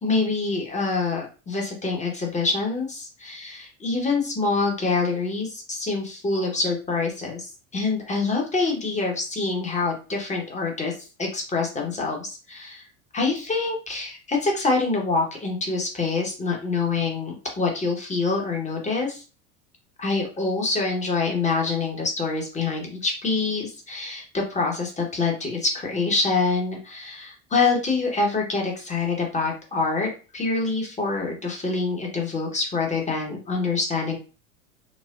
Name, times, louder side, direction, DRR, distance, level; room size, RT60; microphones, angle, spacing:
voice 1, 0.0-12.9 13.1-19.2 20.0-34.2, left 3 dB, 15° left, 0 dB, 1.1 m, -26 dB
4.1 x 2.1 x 2.5 m, 0.34 s
hypercardioid pair, 90°, 42 cm